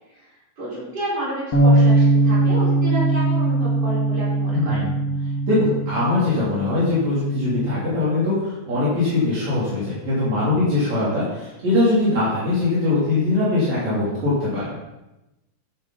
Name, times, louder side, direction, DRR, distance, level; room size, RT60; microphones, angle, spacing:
voice 1, 0.6-4.9, right 1 dB, 30° right, -8 dB, 5.5 m, -30 dB
sound 1, 1.5-7.8, right 2 dB, 40° left, 1.8 m, -20 dB
voice 2, 4.5-5.0 5.5-14.8, left 2 dB, 60° right, -9 dB, 4.5 m, -21 dB
10.5 x 10.5 x 4.1 m, 0.98 s
omnidirectional pair, 3.5 m